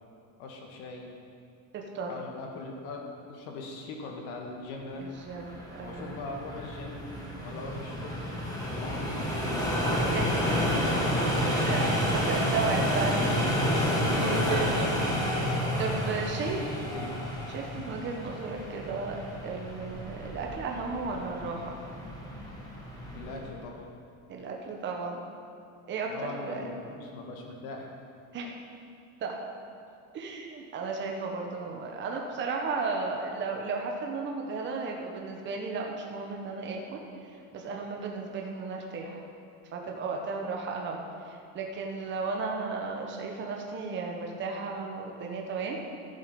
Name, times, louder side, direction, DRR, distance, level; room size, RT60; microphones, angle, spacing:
voice 1, 0.4-1.1 2.0-5.0 5.8-7.1 7.4-8.3 8.7-9.7 10.5-11.1 14.1-14.4 16.2-17.3 23.1-23.8 26.1-27.9, left 3 dB, 75° left, 1 dB, 2.2 m, -40 dB
voice 2, 1.7-2.1 5.0-6.2 8.9-9.0 9.9-10.3 11.6-13.7 14.0-14.9 15.8-16.6 17.5-21.8 24.3-25.2 25.9-26.7 28.3-28.5 29.2-29.4 30.1-39.2 39.7-45.9, right 4 dB, 25° right, 0 dB, 1.1 m, -34 dB
sound 1, 5.2-23.5, equal, 10° left, 1.7 m, -30 dB
14.0 x 7.4 x 5.2 m, 2.5 s
cardioid pair, 150°, 42 cm